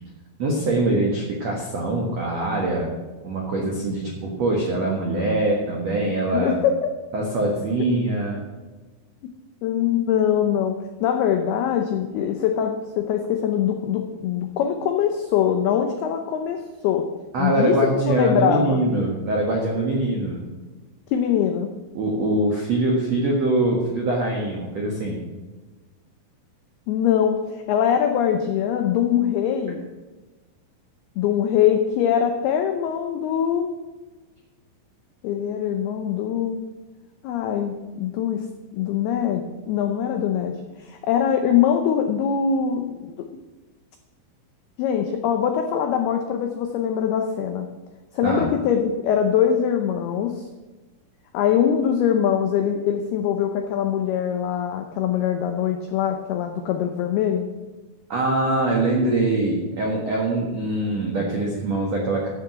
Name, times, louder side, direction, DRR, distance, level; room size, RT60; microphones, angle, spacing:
voice 1, 0.4-2.9 3.2-6.6 7.1-8.4 17.3-20.4 21.9-25.2 48.2-48.5 58.1-62.3, right 2 dB, 70° right, -1 dB, 1.5 m, -23 dB
voice 2, 6.2-6.9 9.6-17.1 17.4-18.8 19.9-20.0 21.1-21.7 26.9-29.9 31.2-33.8 35.2-36.6 37.2-38.5 38.7-43.3 44.8-47.7 48.1-50.5 51.3-57.5, left 8 dB, 85° left, 6 dB, 2.2 m, -23 dB
12.5 x 6.1 x 7.9 m, 1.2 s
omnidirectional pair, 5.6 m